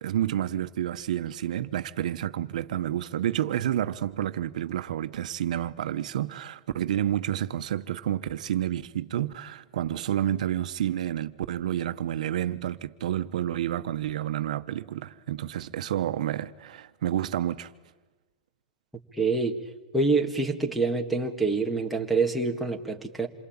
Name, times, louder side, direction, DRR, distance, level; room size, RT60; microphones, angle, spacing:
voice 1, 0.0-17.7, right 11 dB, 85° right, 1.1 m, -29 dB
voice 2, 19.1-19.6 19.9-23.3, right 3 dB, ahead, 1.8 m, -26 dB
27.5 x 23.0 x 8.8 m
supercardioid pair, 160°, 4 cm